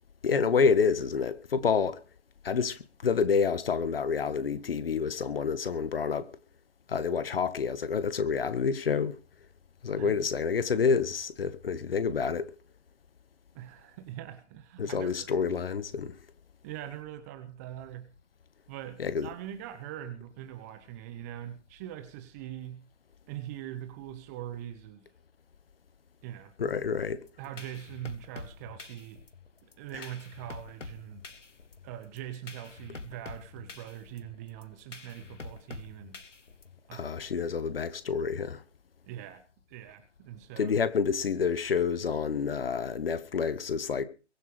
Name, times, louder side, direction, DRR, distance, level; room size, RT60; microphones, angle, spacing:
voice 1, 0.2-2.0 2.4-6.3 6.9-9.2 9.8-12.5 14.8-16.2 19.0-19.3 26.6-27.2 29.9-30.0 36.9-38.6 40.6-44.0, left 5 dB, 50° left, 1.7 m, -28 dB
voice 2, 13.5-15.3 16.6-18.2 18.7-22.9 23.3-25.0 26.2-26.5 27.4-29.2 29.6-31.2 31.8-36.2 36.9-37.2 39.1-39.4 39.7-40.7, right 12 dB, 15° right, 0.9 m, -42 dB
sound 1, 27.3-36.9, left 4 dB, 80° left, 1.6 m, -47 dB
23.0 x 7.7 x 5.0 m
figure-of-eight pair, 140°, 36 cm